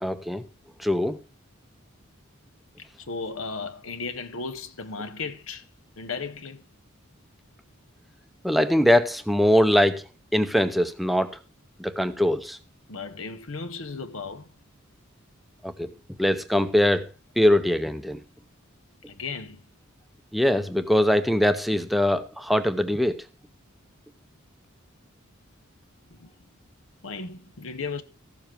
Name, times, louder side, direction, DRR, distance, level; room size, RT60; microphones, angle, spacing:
voice 1, 0.0-0.4 0.8-1.2 8.4-10.0 10.3-11.4 11.8-12.6 15.6-15.9 16.2-17.1 17.4-18.2 20.3-23.2, left 1 dB, ahead, 0.6 m, -22 dB
voice 2, 2.8-5.6 6.0-6.6 12.9-14.5 19.1-19.6 26.1-26.3 27.0-28.0, left 4 dB, 70° left, 0.9 m, -35 dB
14.5 x 7.1 x 4.5 m
head